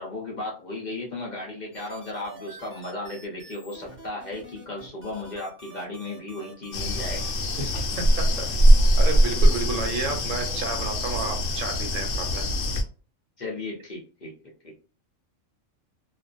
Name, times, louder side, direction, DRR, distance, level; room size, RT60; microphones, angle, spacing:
voice 1, 0.0-7.2 7.6-7.7 13.4-14.3 14.6-14.7, left 2 dB, 45° left, -2 dB, 0.6 m, -35 dB
sound 1, 1.7-7.3, right 2 dB, 10° right, 0.8 m, -47 dB
sound 2, 6.7-12.8, equal, 80° left, 0.9 m, -22 dB
voice 2, 9.0-12.4, right 4 dB, 80° right, 3 dB, 1.1 m, -31 dB
2.5 x 2.2 x 2.4 m, 0.39 s
omnidirectional pair, 1.3 m